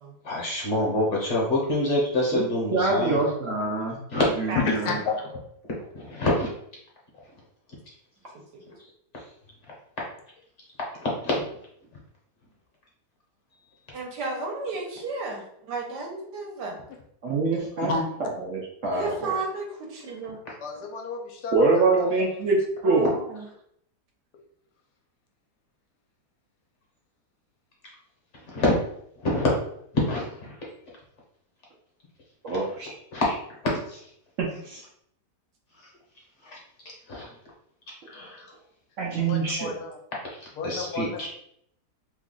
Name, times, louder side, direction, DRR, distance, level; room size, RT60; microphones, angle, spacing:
voice 1, 0.2-3.2 4.1-4.3 5.9-6.5 11.2-11.4 28.5-28.7 29.2-29.5 29.9-30.6 33.1-33.4 33.6-34.0 36.5-36.6 37.1-37.3 38.1-38.4 40.6-41.3, left 1 dB, 50° left, -3 dB, 1.0 m, -25 dB
voice 2, 2.7-4.0 4.4-5.0 17.2-17.9 18.2-19.3 21.5-22.6 22.8-23.1 32.4-32.9 34.4-34.8 39.0-39.7, right 3 dB, 60° right, -3 dB, 0.8 m, -25 dB
voice 3, 4.5-5.3 17.8-18.0 20.6-22.3 39.2-40.0 40.6-41.3, left 4 dB, 75° left, 2 dB, 1.1 m, -31 dB
voice 4, 13.9-16.8 18.9-20.4 22.8-23.5, right 3 dB, 80° right, 1 dB, 1.3 m, -33 dB
3.0 x 2.3 x 3.7 m, 0.70 s
omnidirectional pair, 1.8 m